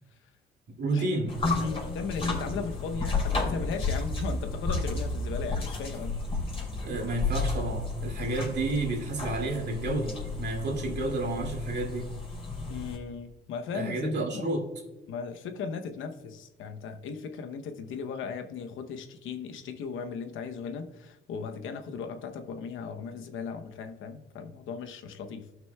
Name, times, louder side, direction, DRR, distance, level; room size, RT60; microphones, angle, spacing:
voice 1, 0.8-1.3 2.5-2.6 6.8-12.1 13.7-14.6, right 2 dB, 60° right, 0 dB, 2.3 m, -30 dB
sound 1, 1.3-13.0, left 3 dB, 30° left, 2.8 m, -32 dB
voice 2, 1.6-6.2 12.7-14.5 15.1-25.5, left 5 dB, 80° left, 7 dB, 0.8 m, -37 dB
14.5 x 6.0 x 2.3 m, 1.1 s
cardioid pair, 90°, 20 cm